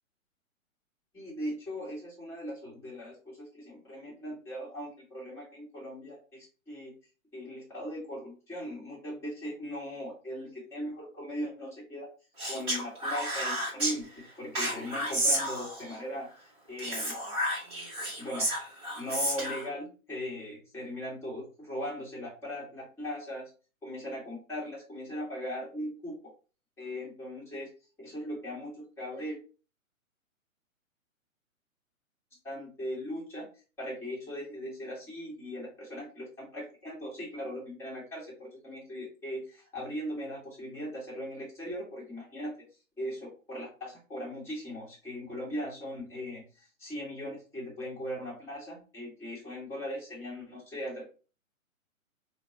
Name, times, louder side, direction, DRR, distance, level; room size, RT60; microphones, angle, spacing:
voice 1, 1.1-6.9 7.3-12.1 12.4-17.1 18.2-23.5 23.8-26.3 26.8-27.7 28.0-29.4 32.4-33.5 33.8-42.5 43.0-51.0, equal, 5° left, -6 dB, 1.4 m, -39 dB
Speech, 12.4-13.9 14.5-16.0 16.8-19.7, right 1 dB, 15° right, 1.3 m, -31 dB
4.1 x 2.2 x 3.1 m, 0.36 s
figure-of-eight pair, 125°, 41 cm